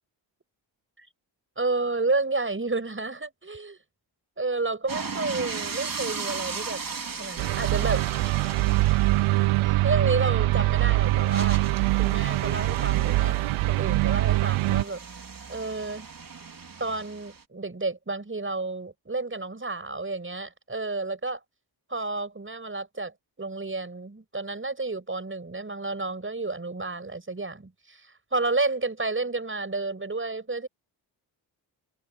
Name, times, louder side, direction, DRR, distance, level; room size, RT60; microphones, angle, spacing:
voice 1, 1.6-3.8 4.4-6.8 7.2-8.1 9.6-11.6 12.0-13.4 13.7-15.0 15.5-16.1 16.8-21.4 21.9-23.1 23.4-30.7, right 3 dB, 25° right, 6.4 m, -31 dB
sound 1, 4.9-17.4, right 5 dB, 45° right, 4.8 m, -38 dB
sound 2, 7.4-14.8, right 20 dB, 90° right, 0.6 m, -23 dB
cardioid pair, 60°, 48 cm